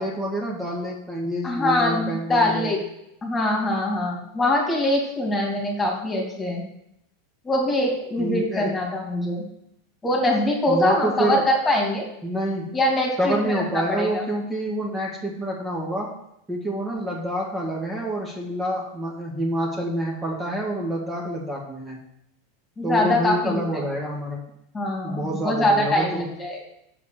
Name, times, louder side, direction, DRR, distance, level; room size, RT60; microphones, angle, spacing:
voice 1, 0.0-2.7 8.2-8.7 10.7-11.4 12.2-12.8 13.2-16.1 16.5-22.0 22.8-24.4 25.0-26.3, right 1 dB, 15° right, -2 dB, 2.0 m, -27 dB
voice 2, 1.4-2.8 3.2-6.6 7.4-9.4 10.0-12.1 12.7-14.2 22.8-23.6 24.7-26.7, left 1 dB, 15° left, -1 dB, 2.6 m, -23 dB
7.2 x 5.0 x 6.8 m, 0.78 s
hypercardioid pair, 120°, 0 cm